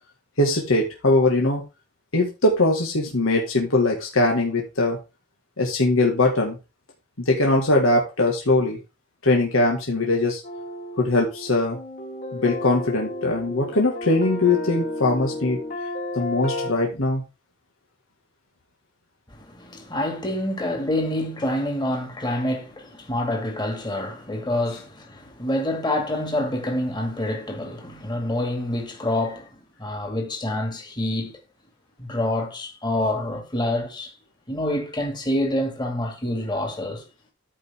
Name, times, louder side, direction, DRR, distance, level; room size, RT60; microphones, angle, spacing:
voice 1, 0.4-1.6 2.1-5.0 5.6-6.6 7.2-8.8 9.2-10.4 11.0-11.8 12.3-15.6 16.1-17.2, left 2 dB, 90° left, 2.0 m, -21 dB
sound 1, 10.4-16.7, left 1 dB, 50° left, 2.9 m, -32 dB
voice 2, 19.3-31.4 32.0-34.1 34.5-37.1, left 1 dB, 20° left, 2.2 m, -27 dB
13.0 x 5.3 x 3.7 m
head